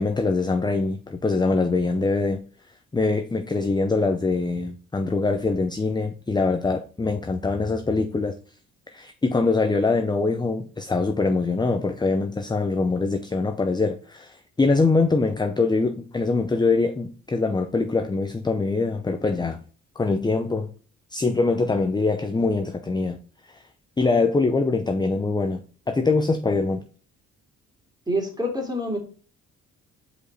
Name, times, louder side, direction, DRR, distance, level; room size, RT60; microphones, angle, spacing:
voice 1, 0.0-2.4 2.9-8.4 8.9-19.6 20.0-20.7 21.1-23.2 23.4-23.6 24.0-25.6 25.9-26.8, left 3 dB, 15° left, 0.6 m, -23 dB
voice 2, 28.1-29.0, equal, 15° right, 2.7 m, -26 dB
5.2 x 5.0 x 4.1 m
cardioid pair, 90°, 30 cm